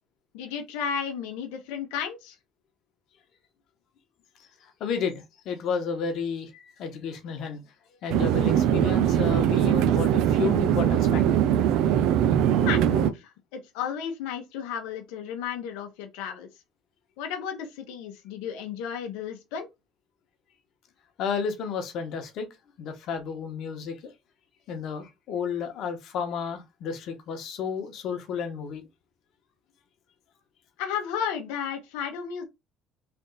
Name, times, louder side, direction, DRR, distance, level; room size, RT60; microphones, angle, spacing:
voice 1, 0.3-2.4 12.6-16.5 17.2-19.7 30.8-32.4, left 8 dB, 90° left, 0.9 m, -33 dB
voice 2, 4.4-7.7 8.0-11.2 21.2-22.5 22.8-24.1 24.7-28.8, left 6 dB, 65° left, 1.1 m, -32 dB
sound 1, 8.1-13.1, right 10 dB, 75° right, 0.4 m, -21 dB
3.4 x 2.6 x 3.9 m
cardioid pair, 105°, 0 cm